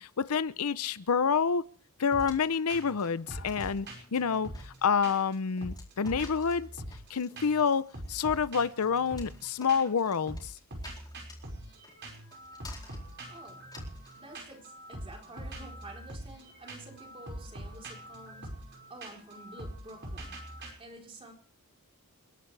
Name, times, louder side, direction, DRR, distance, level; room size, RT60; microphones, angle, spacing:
voice 1, 0.0-1.6 2.0-6.7 7.1-10.5, left 6 dB, 75° left, 0.6 m, -28 dB
sound 1, 2.1-2.4 2.7-3.0 3.3-5.3 5.6-7.1 7.4-7.7 7.9-10.0 10.3-20.7, right 1 dB, 50° right, 5.2 m, -43 dB
sound 2, 2.2-14.2, left 3 dB, 20° left, 4.3 m, -54 dB
Drum, 3.3-4.5, left 2 dB, 60° left, 3.0 m, -51 dB
voice 2, 13.2-13.7 14.2-21.3, right 1 dB, 25° right, 3.8 m, -50 dB
30.0 x 11.5 x 3.3 m
head